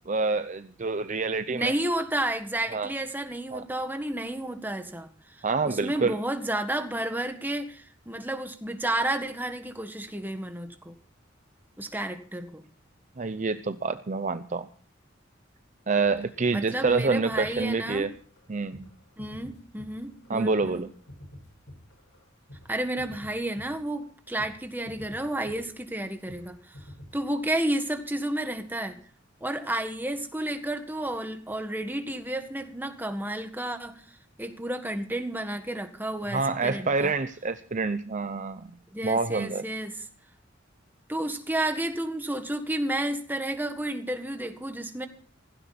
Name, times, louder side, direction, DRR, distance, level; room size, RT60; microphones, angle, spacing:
voice 1, 0.1-1.7 2.7-2.9 3.5-3.6 5.4-6.1 13.2-14.7 15.9-18.1 18.5-18.9 20.3-20.9 36.3-38.7 39.0-39.6, right 4 dB, 40° right, 10 dB, 0.6 m, -27 dB
voice 2, 1.5-10.9 11.8-12.6 16.5-18.1 19.2-20.8 22.7-26.8 27.1-29.0 29.4-37.1 38.9-40.0 41.1-45.1, right 1 dB, 10° right, 6 dB, 1.6 m, -31 dB
sound 1, 16.0-22.7 23.0-24.1 24.4-24.6 24.9-26.0 26.3-26.5 26.7-27.2, left 1 dB, 70° left, 4.8 m, -48 dB
16.5 x 16.0 x 4.2 m, 0.43 s
head